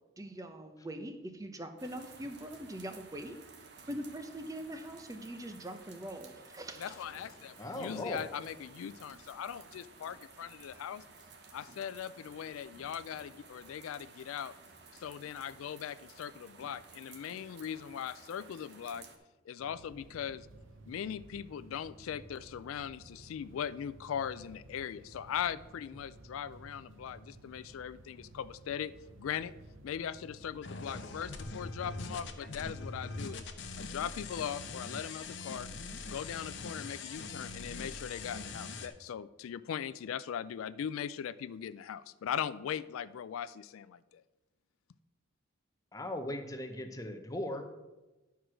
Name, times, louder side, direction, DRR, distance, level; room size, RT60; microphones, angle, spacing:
voice 1, 0.2-3.4 3.9-7.0, right 1 dB, 15° right, 7 dB, 0.7 m, -42 dB
sound 1, 1.8-19.2, right 4 dB, 55° right, 1.1 m, -55 dB
voice 2, 6.8-11.0 11.5-14.5 15.0-19.0 19.5-20.5 20.9-28.9 29.2-29.5 29.8-33.5 33.8-35.7 36.1-44.2, left 8 dB, 85° left, 15 dB, 0.3 m, -40 dB
voice 3, 7.6-8.3 45.9-47.6, left 1 dB, 15° left, 6 dB, 0.8 m, -38 dB
sound 2, 19.6-33.1, right 2 dB, 70° right, 0.8 m, -55 dB
sound 3, 30.6-38.9, left 3 dB, 60° left, 0.8 m, -42 dB
11.0 x 4.7 x 6.2 m, 1.1 s
head